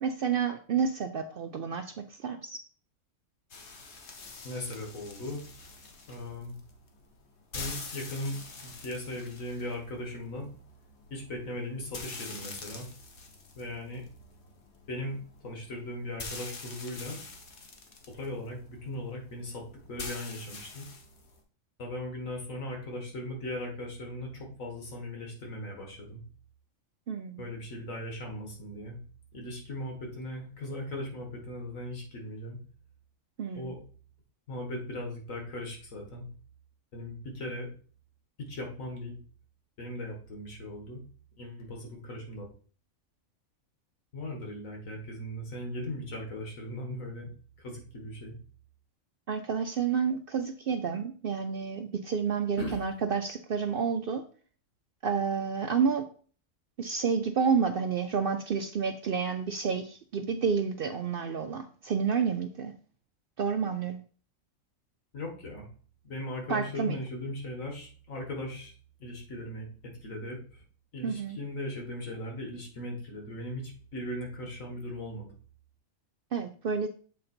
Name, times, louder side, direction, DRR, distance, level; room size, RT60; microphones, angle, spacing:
voice 1, 0.0-2.6 27.1-27.4 33.4-33.7 49.3-54.3 55.0-56.1 56.8-62.7 63.4-64.0 66.5-67.0 71.0-71.4 76.3-76.9, right 6 dB, 65° right, 7 dB, 0.5 m, -30 dB
sound 1, 3.5-21.4, left 4 dB, 55° left, 1.3 m, -46 dB
voice 2, 4.4-5.4 6.1-6.5 7.5-10.5 11.1-12.9 13.6-14.0 14.9-17.2 18.1-20.8 21.8-26.2 27.4-29.0 29.3-32.6 33.6-33.8 34.5-36.2 36.9-37.7 38.4-39.1 39.8-41.0 41.4-42.5 44.1-47.3 47.6-48.4 52.6-52.8 65.1-65.7 66.0-68.7 69.0-70.6 70.9-75.3, left 1 dB, 75° left, 1 dB, 2.0 m, -38 dB
7.5 x 3.8 x 4.3 m, 0.42 s
omnidirectional pair, 1.4 m